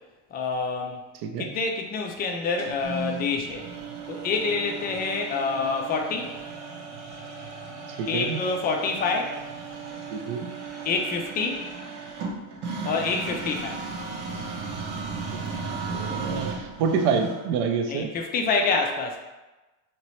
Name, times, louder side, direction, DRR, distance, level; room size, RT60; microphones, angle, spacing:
voice 1, 0.3-1.0 1.4-3.7 4.1-6.3 8.0-9.4 10.8-11.6 12.8-13.8 17.9-19.2, left 4 dB, 25° left, 2 dB, 0.3 m, -27 dB
sound 1, 2.6-17.6, right 4 dB, 85° right, 1.0 m, -35 dB
voice 2, 8.0-8.4 10.1-10.5 15.3-15.4 15.9-18.1, right 6 dB, 60° right, 5 dB, 0.6 m, -27 dB
3.0 x 2.9 x 3.0 m, 1.1 s
supercardioid pair, 115°, 44 cm